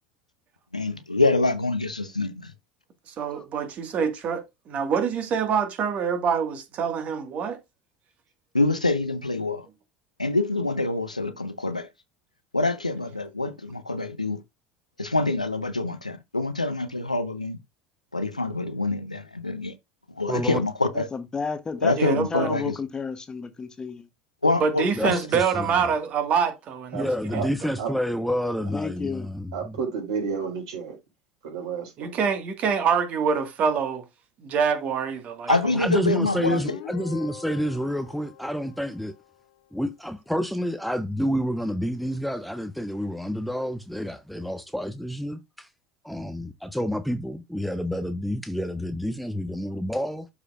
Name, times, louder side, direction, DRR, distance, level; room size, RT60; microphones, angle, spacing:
voice 1, 0.7-2.5 8.5-9.7 10.2-11.9 12.5-14.4 15.0-17.6 18.1-19.8 20.1-21.1 21.8-22.8 24.4-25.2 35.5-36.8, left 2 dB, 85° left, 0.7 m, -25 dB
voice 2, 3.1-7.6 21.9-22.5 24.6-27.4 32.0-34.0 34.4-35.5, right 6 dB, 40° right, 1.7 m, -25 dB
voice 3, 20.3-20.6 24.9-25.9 26.9-29.8 35.5-39.1 39.7-45.7 46.0-50.3, equal, ahead, 0.6 m, -29 dB
voice 4, 21.1-24.1 28.7-29.3, left 5 dB, 20° left, 1.0 m, -32 dB
voice 5, 29.5-31.0 31.4-32.2, right 6 dB, 60° right, 4.5 m, -31 dB
Guitar, 36.2-39.7, left 7 dB, 60° left, 1.6 m, -43 dB
12.0 x 4.9 x 2.4 m
figure-of-eight pair, 70°, 4 cm